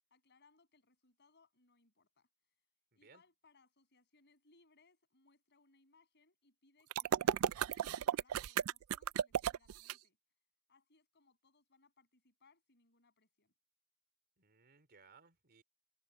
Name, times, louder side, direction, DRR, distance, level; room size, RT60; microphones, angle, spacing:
voice 1, 0.1-2.3 3.0-10.2 10.7-13.5, left 3 dB, 55° left, 7.0 m, -71 dB
voice 2, 2.9-3.2 14.4-15.6, right 5 dB, 50° right, 3.4 m, -64 dB
sound 1, 6.9-9.9, right 9 dB, 80° right, 0.4 m, -34 dB
head